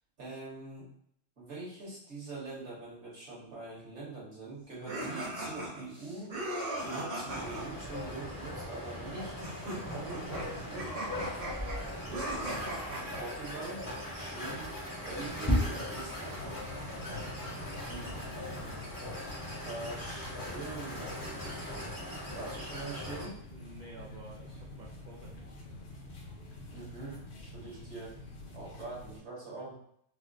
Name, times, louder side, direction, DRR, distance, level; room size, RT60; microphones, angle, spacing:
voice 1, 0.2-0.9 1.4-6.4 6.8-10.5 12.0-12.6 13.1-13.8 14.1-14.8 15.1-16.5 19.6-23.4 26.7-27.2 27.5-28.1 28.5-29.7, right 3 dB, 60° right, -7 dB, 1.6 m, -44 dB
sound 1, 4.8-7.7 9.4-13.2, right 1 dB, 35° right, 0.8 m, -38 dB
sound 2, 7.3-23.3, left 1 dB, 20° left, 0.7 m, -38 dB
sound 3, 16.2-29.2, left 1 dB, 60° left, 1.0 m, -47 dB
voice 2, 16.9-18.8 23.5-25.8 27.7-27.8, right 1 dB, 85° right, -2 dB, 0.4 m, -52 dB
4.3 x 2.0 x 2.5 m, 0.68 s
omnidirectional pair, 1.3 m